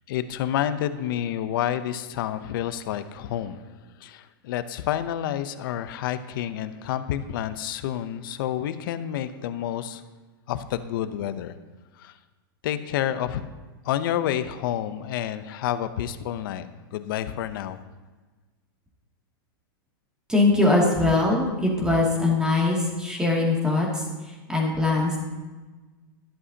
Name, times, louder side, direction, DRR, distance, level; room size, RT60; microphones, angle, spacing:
voice 1, 0.1-3.6 4.0-10.0 10.5-11.5 12.0-12.1 12.6-13.5 13.8-17.8, left 11 dB, 65° left, 12 dB, 0.7 m, -29 dB
voice 2, 20.3-25.2, left 2 dB, 5° right, -3 dB, 2.3 m, -22 dB
12.5 x 11.5 x 2.8 m, 1.3 s
supercardioid pair, 135°, 12 cm